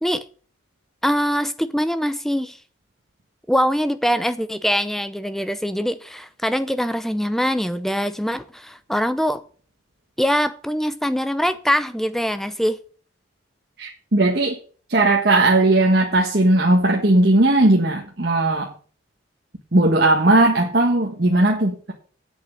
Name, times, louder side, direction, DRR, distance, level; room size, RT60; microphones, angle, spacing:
voice 1, 1.0-2.6 3.5-9.4 10.2-12.8, equal, ahead, 0.6 m, -23 dB
voice 2, 13.8-14.6 14.9-18.7 19.7-21.9, right 2 dB, 55° right, 1.5 m, -17 dB
8.5 x 7.3 x 7.9 m
head